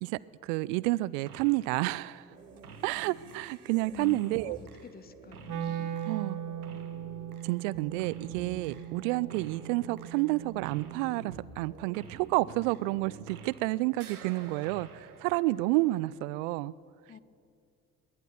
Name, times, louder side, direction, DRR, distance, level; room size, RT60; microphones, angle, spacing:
voice 1, 0.0-2.3 2.8-4.6 6.0-6.4 7.4-16.7, right 20 dB, 60° right, 20 dB, 0.5 m, -30 dB
sound 1, 1.3-1.7 1.9-13.7 13.9-16.1, right 4 dB, 85° right, 1.0 m, -49 dB
voice 2, 3.9-5.6 17.1-17.2, left 6 dB, 20° left, 15 dB, 0.8 m, -46 dB
Wind instrument woodwind instrument, 5.4-11.5, right 9 dB, 45° right, 1.3 m, -39 dB
21.0 x 9.2 x 7.0 m, 2.4 s
figure-of-eight pair, 45°, 43 cm